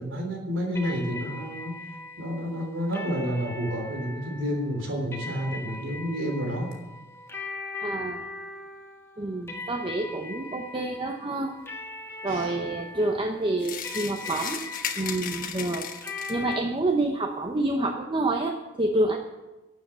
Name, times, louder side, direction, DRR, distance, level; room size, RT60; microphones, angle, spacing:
voice 1, 0.0-1.7 2.2-6.7 12.3-12.5, equal, 80° right, 2 dB, 3.3 m, -30 dB
sound 1, 0.7-16.6, left 3 dB, 15° left, 1.4 m, -40 dB
voice 2, 7.8-8.3 9.2-11.5 12.2-14.6 15.0-15.9 16.3-19.3, right 2 dB, 25° right, 4 dB, 0.8 m, -28 dB
sound 2, 13.6-16.5, left 7 dB, 45° left, 1.2 m, -35 dB
12.5 x 7.4 x 7.9 m, 1.1 s
head